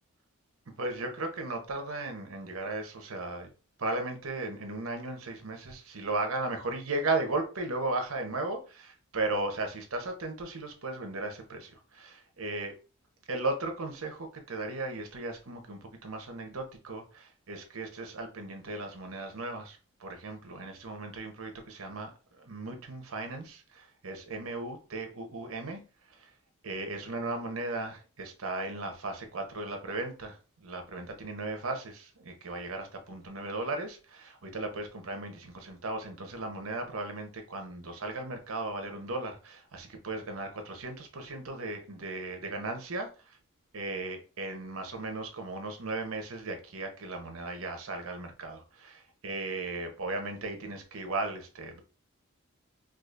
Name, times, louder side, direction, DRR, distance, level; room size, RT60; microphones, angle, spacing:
voice 1, 0.8-3.5 3.8-12.7 13.3-25.8 26.1-26.3 26.6-43.4 43.7-51.8, right 2 dB, 80° right, 0.9 m, -36 dB
4.8 x 2.5 x 2.4 m
head